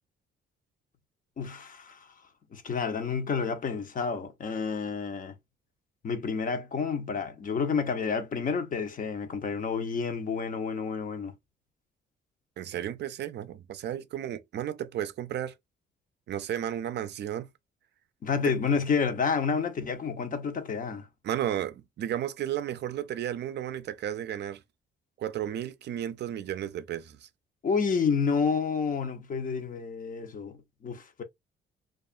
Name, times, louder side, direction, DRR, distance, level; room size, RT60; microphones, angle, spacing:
voice 1, 1.4-2.1 2.5-5.3 6.0-11.3 18.2-21.1 27.6-31.2, left 5 dB, 45° left, 0.7 m, -29 dB
voice 2, 12.6-15.5 16.3-17.5 21.2-24.6 25.2-27.3, right 11 dB, 60° right, 0.4 m, -33 dB
2.6 x 2.4 x 2.4 m
cardioid pair, 90°, 20 cm